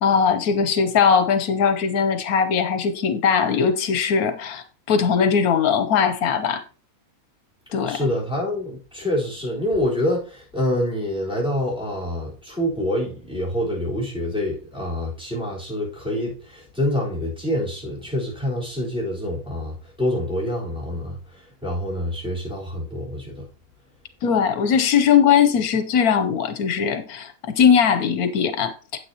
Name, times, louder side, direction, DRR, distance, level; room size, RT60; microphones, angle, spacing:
voice 1, 0.0-6.6 7.7-8.0 24.2-28.7, left 7 dB, 80° left, 1.2 m, -20 dB
voice 2, 7.9-23.5, left 1 dB, 5° right, 4.0 m, -26 dB
9.4 x 8.5 x 2.8 m
omnidirectional pair, 1.5 m